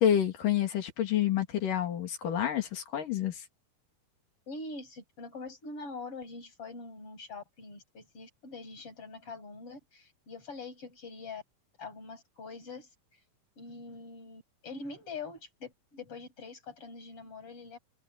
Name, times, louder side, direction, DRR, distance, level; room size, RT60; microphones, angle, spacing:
voice 1, 0.0-3.4, left 10 dB, 70° left, 3.8 m, -28 dB
voice 2, 4.5-11.4 11.8-12.9 13.6-17.8, left 3 dB, 40° left, 8.5 m, -44 dB
omnidirectional pair, 4.0 m